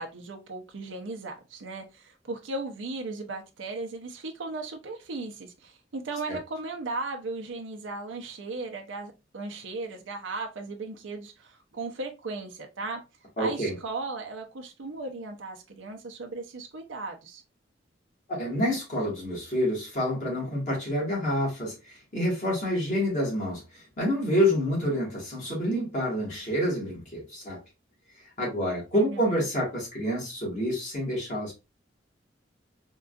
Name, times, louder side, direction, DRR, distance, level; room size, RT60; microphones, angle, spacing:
voice 1, 0.0-13.0 13.4-17.4 28.9-29.4, right 3 dB, 80° right, 0.6 m, -36 dB
voice 2, 13.4-13.8 18.3-27.6 28.4-31.5, equal, 40° left, 1.6 m, -28 dB
3.6 x 2.3 x 2.4 m
head